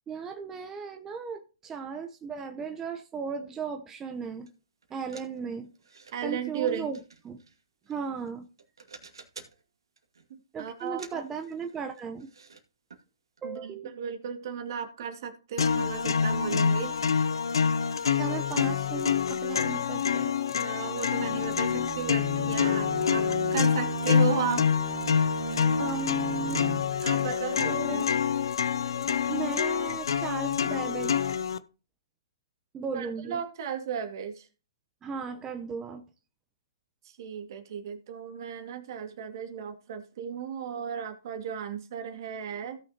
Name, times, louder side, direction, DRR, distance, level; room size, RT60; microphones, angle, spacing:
voice 1, 0.1-4.5 4.9-5.7 6.2-7.0 7.2-7.4 7.9-8.5 10.5-12.3 13.4-13.9 18.2-20.3 25.5-26.9 27.6-28.0 29.3-31.4 32.7-33.4 35.0-36.0, right 5 dB, 15° right, 0.9 m, -36 dB
sound 1, 4.5-4.6 4.8-6.1 6.7-8.3 8.6-9.6 10.0-10.3 10.8-12.6 12.9-13.0 13.4-13.5, right 5 dB, 80° right, 2.2 m, -51 dB
voice 2, 6.1-6.9 10.3-11.3 13.4-17.0 20.6-24.7 25.1-25.7 27.0-28.1 32.9-34.5 37.0-42.8, right 8 dB, 55° right, 2.2 m, -35 dB
sound 2, 15.6-31.6, left 6 dB, 75° left, 0.6 m, -26 dB
Bowed string instrument, 21.2-27.2, right 15 dB, 40° right, 0.5 m, -38 dB
17.0 x 6.2 x 2.9 m
hypercardioid pair, 130°, 2 cm